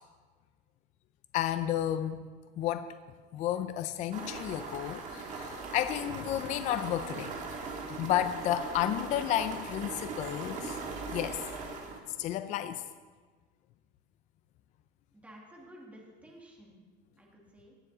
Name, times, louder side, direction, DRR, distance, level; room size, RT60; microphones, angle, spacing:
voice 1, 1.3-2.3 2.6-2.9 3.3-7.3 7.9-10.8 11.1-11.4 12.2-12.8, left 11 dB, 40° left, 10 dB, 0.4 m, -32 dB
sound 1, 4.1-12.0, right 4 dB, 35° right, 1.5 m, -40 dB
voice 2, 15.2-16.8 17.2-17.8, right 1 dB, 5° right, -2 dB, 1.8 m, -53 dB
17.5 x 7.2 x 3.8 m, 1.4 s
cardioid pair, 170°, 20 cm